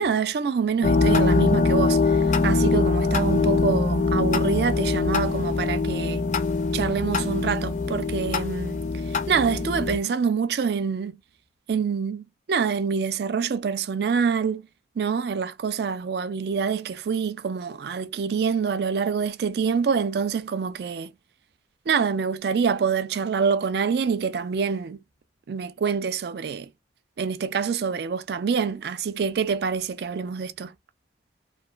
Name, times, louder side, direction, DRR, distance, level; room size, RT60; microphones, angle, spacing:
voice 1, 0.0-6.2 6.7-8.8 9.3-11.2 11.7-14.6 15.0-21.1 21.9-25.0 25.5-26.7 27.2-30.7, right 6 dB, 55° right, 0.3 m, -26 dB
sound 1, 0.8-10.0, left 3 dB, 40° left, 0.4 m, -23 dB
3.1 x 2.4 x 2.2 m
head